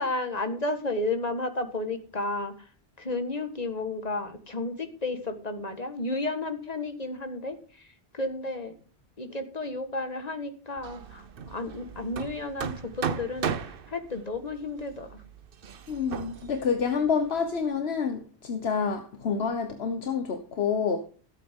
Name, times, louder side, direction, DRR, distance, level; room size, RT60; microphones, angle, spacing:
voice 1, 0.0-2.7 3.0-8.8 9.2-15.2, left 2 dB, 40° left, 1.7 m, -32 dB
Hammer, 10.8-17.7, right 7 dB, 60° right, 1.0 m, -37 dB
voice 2, 15.9-21.0, left 6 dB, 75° left, 1.3 m, -28 dB
16.0 x 8.3 x 3.7 m
omnidirectional pair, 1.1 m